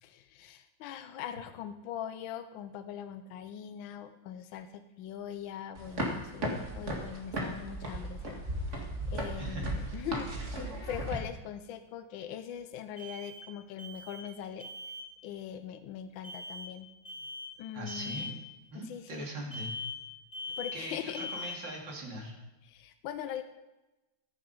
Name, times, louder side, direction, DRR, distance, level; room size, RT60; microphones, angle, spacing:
voice 1, 0.0-8.4 8.7-14.7 15.2-16.9 17.6-18.4 18.7-19.3 20.6-21.3 22.6-23.4, left 9 dB, 85° left, 10 dB, 1.4 m, -41 dB
sound 1, 5.7-11.2, right 1 dB, 40° right, 2.2 m, -36 dB
voice 2, 9.3-9.8 17.7-18.3 18.7-19.7 20.7-22.3, right 1 dB, 65° right, -1 dB, 3.2 m, -41 dB
sound 2, 13.0-13.5 13.8-14.3 14.6-15.1 16.2-16.7 17.0-17.5 17.9-18.4 19.5-20.1 20.3-20.9 21.1-21.7, left 3 dB, 45° left, 2.9 m, -41 dB
19.0 x 7.3 x 5.3 m, 1.0 s
omnidirectional pair, 2.1 m